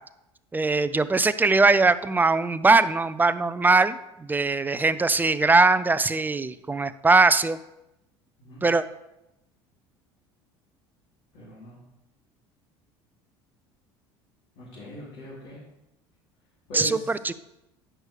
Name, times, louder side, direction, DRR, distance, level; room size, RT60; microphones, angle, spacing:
voice 1, 0.5-7.6 8.6-8.8 16.7-17.3, right 3 dB, 15° right, 14 dB, 0.4 m, -21 dB
voice 2, 11.3-11.8 14.5-15.6 16.7-17.1, equal, 70° left, -8 dB, 3.1 m, -39 dB
10.0 x 6.2 x 3.4 m, 0.90 s
hypercardioid pair, 70°, 14 cm